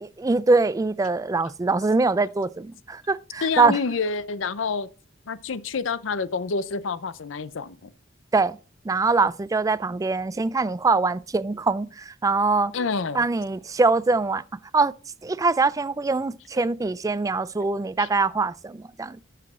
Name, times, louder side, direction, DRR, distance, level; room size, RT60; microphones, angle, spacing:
voice 1, 0.0-3.8 8.3-8.6 8.8-12.7 13.1-14.4 14.7-14.9 15.2-19.2, right 3 dB, 20° right, 0.3 m, -23 dB
voice 2, 3.4-4.9 5.3-7.9 12.7-13.3 18.0-18.1, left 4 dB, 80° left, 0.6 m, -28 dB
12.0 x 5.9 x 3.7 m
head